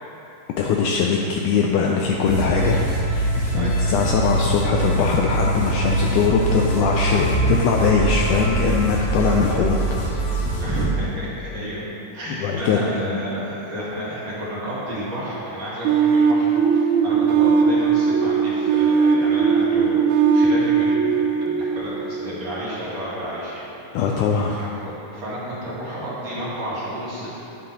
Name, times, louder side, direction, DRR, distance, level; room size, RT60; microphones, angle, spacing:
voice 1, 0.6-9.8 10.1-10.5 12.4-12.8 23.9-24.5, left 5 dB, 80° left, 0 dB, 1.8 m, -21 dB
sound 1, 2.3-10.8, right 1 dB, 65° left, 3.0 m, -23 dB
voice 2, 10.6-11.8 12.1-16.5 16.8-23.6 24.5-27.4, equal, 55° right, -9 dB, 2.8 m, -31 dB
sound 2, 15.9-22.6, right 6 dB, 90° right, 1.7 m, -19 dB
10.5 x 7.7 x 2.8 m, 2.9 s
omnidirectional pair, 3.9 m